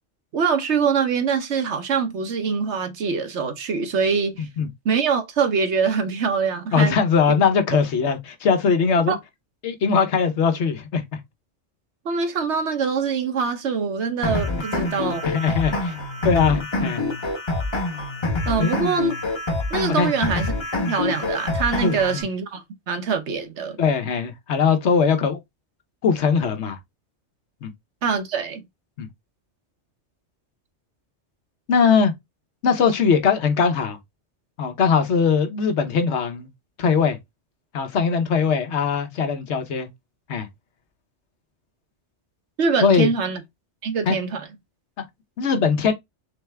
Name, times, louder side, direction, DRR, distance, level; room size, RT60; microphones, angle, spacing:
voice 1, 0.3-4.5 4.8-7.0 9.1-9.2 12.0-15.3 18.5-19.1 19.7-20.5 20.9-23.8 28.0-28.6 42.6-43.4 43.8-44.5, right 5 dB, 70° right, 1.2 m, -24 dB
voice 2, 6.7-9.2 9.6-11.0 15.2-16.0 16.2-17.0 18.6-18.7 20.0-20.1 21.8-22.2 23.8-25.4 26.0-26.8 27.6-27.7 29.0-29.1 31.7-32.1 32.6-34.0 34.6-36.5 36.8-37.2 37.7-39.9 40.3-40.5 42.8-43.1 44.1-44.2 45.4-45.9, left 6 dB, 70° left, 1.1 m, -20 dB
sound 1, 14.2-22.2, left 2 dB, 25° left, 0.9 m, -26 dB
4.0 x 3.3 x 3.3 m
omnidirectional pair, 1.2 m